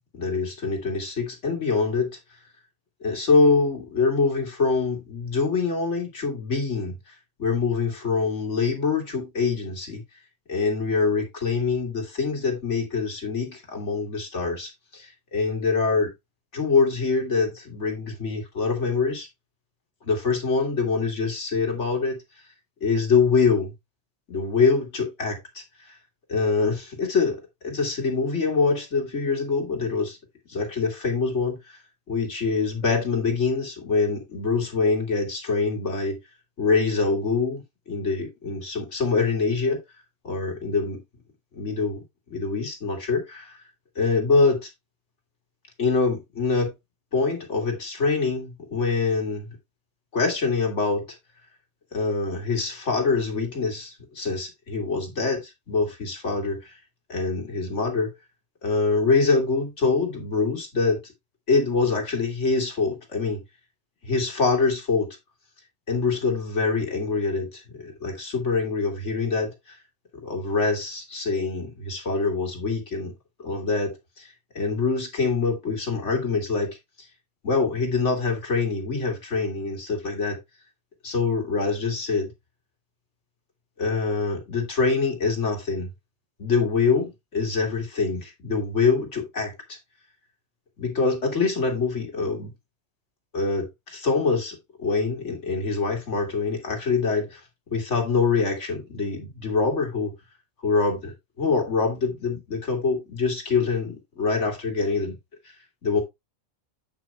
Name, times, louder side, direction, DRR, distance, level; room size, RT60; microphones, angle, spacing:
voice 1, 0.1-2.2 3.0-7.0 7.4-10.0 10.5-16.1 16.5-19.3 20.1-22.2 22.8-23.7 24.3-25.9 26.3-30.2 30.5-31.8 32.1-36.2 36.6-39.8 40.2-41.0 41.5-42.0 42.3-43.6 44.0-44.7 45.8-46.7 47.1-49.5 50.1-51.2 51.9-56.7 57.1-58.1 58.6-61.1 61.5-63.4 64.0-65.1 65.9-69.8 70.2-73.1 73.4-76.8 77.4-80.4 81.0-82.3 83.8-85.9 86.4-89.8 90.8-92.5 93.3-97.4 97.7-100.1 100.6-105.2 105.8-106.0, left 4 dB, 55° left, 2.8 m, -25 dB
9.1 x 9.0 x 2.3 m
omnidirectional pair, 1.4 m